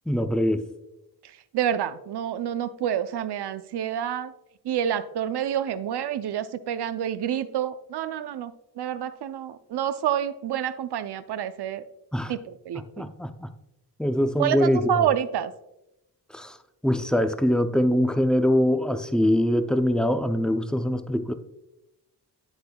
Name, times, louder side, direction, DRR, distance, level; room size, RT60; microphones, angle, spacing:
voice 1, 0.1-0.6 12.1-12.3 13.0-13.5 14.0-15.0 16.3-16.6 16.8-21.3, equal, ahead, 9 dB, 0.5 m, -23 dB
voice 2, 1.5-4.3 4.6-11.8 12.3-13.0 14.4-15.5, right 9 dB, 70° right, 12 dB, 0.6 m, -28 dB
8.6 x 8.1 x 2.3 m, 0.88 s
cardioid pair, 80°, 41 cm